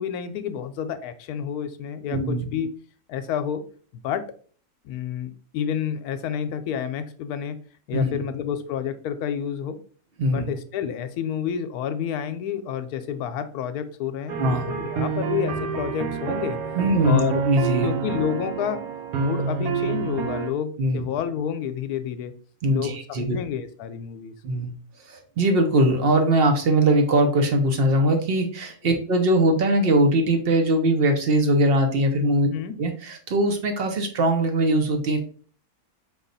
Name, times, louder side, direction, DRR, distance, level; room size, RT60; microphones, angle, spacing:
voice 1, 0.0-2.7 3.1-3.6 4.0-4.3 4.8-7.6 7.9-9.8 10.3-16.6 17.0-17.4 17.8-18.8 19.1-22.3 22.7-24.3 28.9-29.0 32.5-32.7, left 8 dB, 80° left, 10 dB, 1.1 m, -29 dB
voice 2, 2.1-2.4 7.9-8.2 10.2-10.5 14.4-14.7 16.8-17.2 17.4-17.9 20.8-21.1 22.6-23.4 24.4-24.7 25.1-32.5 32.8-35.2, right 1 dB, 50° right, 4 dB, 0.8 m, -21 dB
sound 1, 14.3-20.5, right 6 dB, 75° right, 1.1 m, -28 dB
5.2 x 2.4 x 3.9 m, 0.43 s
omnidirectional pair, 1.6 m